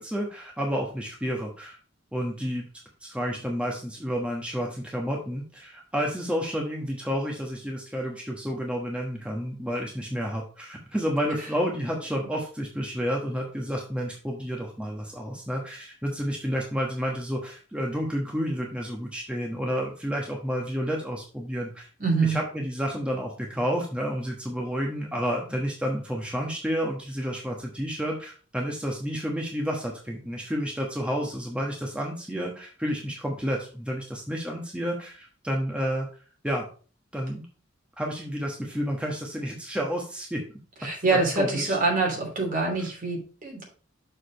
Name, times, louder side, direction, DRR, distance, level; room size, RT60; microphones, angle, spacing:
voice 1, 0.0-1.8 2.1-2.7 3.0-21.9 22.2-36.1 36.4-36.7 37.1-37.5 38.0-40.4 41.1-41.8 42.8-42.9, equal, 5° right, -1 dB, 1.1 m, -30 dB
voice 2, 22.0-22.4 40.8-43.6, right 3 dB, 45° right, 0 dB, 3.0 m, -25 dB
6.6 x 4.9 x 5.1 m, 0.38 s
head